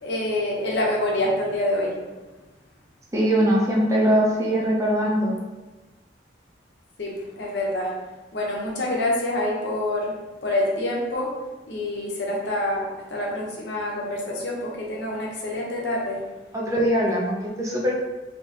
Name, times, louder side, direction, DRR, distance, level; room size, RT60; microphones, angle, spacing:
voice 1, 0.0-2.0 7.0-7.9 8.3-10.1 10.4-11.3 11.7-16.2, left 1 dB, 65° left, -3 dB, 0.8 m, -26 dB
voice 2, 3.1-5.3 16.5-17.9, equal, 15° right, -4 dB, 0.6 m, -21 dB
2.9 x 2.8 x 3.3 m, 1.2 s
head